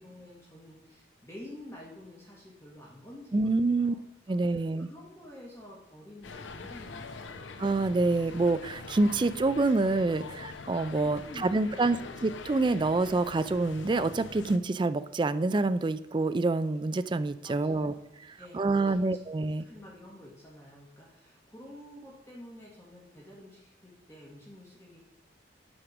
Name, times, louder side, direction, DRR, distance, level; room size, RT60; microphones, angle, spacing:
voice 1, 0.0-4.0 4.3-7.9 11.0-12.1 17.4-18.1 18.4-19.2 19.6-25.0, left 1 dB, 15° left, -4 dB, 1.5 m, -49 dB
voice 2, 3.3-3.9 4.3-4.9 7.6-17.9 18.5-19.6, right 3 dB, 25° right, 12 dB, 0.4 m, -27 dB
sound 1, 6.2-14.6, left 4 dB, 85° left, 0.8 m, -44 dB
8.8 x 5.0 x 6.0 m, 0.88 s
head